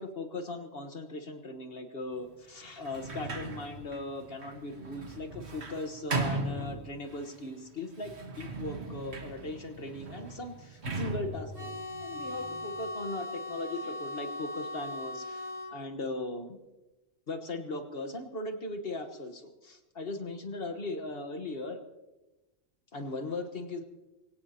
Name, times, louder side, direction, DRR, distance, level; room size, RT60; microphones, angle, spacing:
voice 1, 0.0-11.7 12.0-16.6 17.3-21.8 22.9-23.8, left 2 dB, 55° left, 6 dB, 1.5 m, -38 dB
Sliding door, 2.8-7.3 8.0-12.8, right 3 dB, 65° right, 1.7 m, -38 dB
sound 1, 11.5-15.7, left 2 dB, 20° right, 4.5 m, -39 dB
23.5 x 17.0 x 2.9 m, 1.1 s
omnidirectional pair, 1.2 m